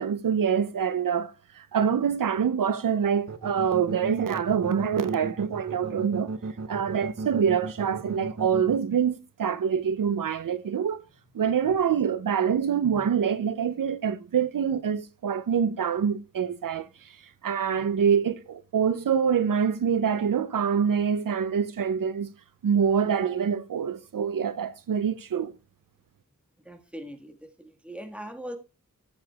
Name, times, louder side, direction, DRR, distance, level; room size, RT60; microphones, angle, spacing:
voice 1, 0.0-6.3 6.7-11.0 11.3-17.2 17.4-22.3 22.6-25.5, right 7 dB, 80° right, 0.6 m, -25 dB
sound 1, 3.3-8.8, right 3 dB, 55° right, 0.9 m, -34 dB
voice 2, 26.6-28.6, equal, 5° right, 1.5 m, -41 dB
15.5 x 7.9 x 2.3 m
wide cardioid pair, 70°, 33 cm